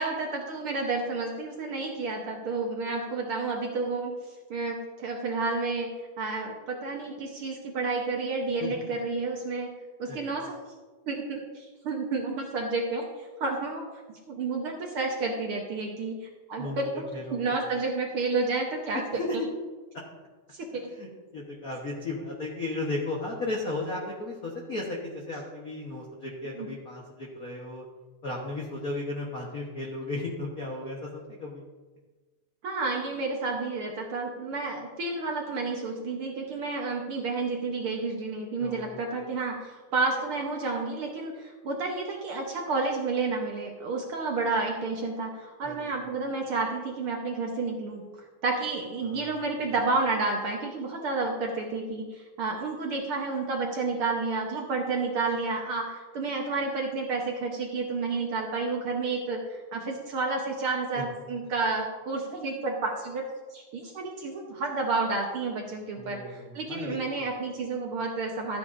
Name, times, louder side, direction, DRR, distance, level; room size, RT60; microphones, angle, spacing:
voice 1, 0.0-4.2 4.5-9.7 10.0-10.5 11.1-16.9 17.3-19.0 20.5-20.8 26.6-26.7 32.6-48.0 48.4-63.2 63.5-68.6, right 3 dB, 60° right, 0 dB, 1.5 m, -30 dB
voice 2, 16.6-17.5 18.9-19.5 20.7-27.8 28.2-31.6 38.6-39.1 45.6-45.9 49.0-49.3 49.6-49.8 60.9-61.0 66.0-67.0, left 2 dB, 55° left, -2 dB, 0.9 m, -35 dB
13.5 x 9.2 x 2.6 m, 1.3 s
omnidirectional pair, 3.4 m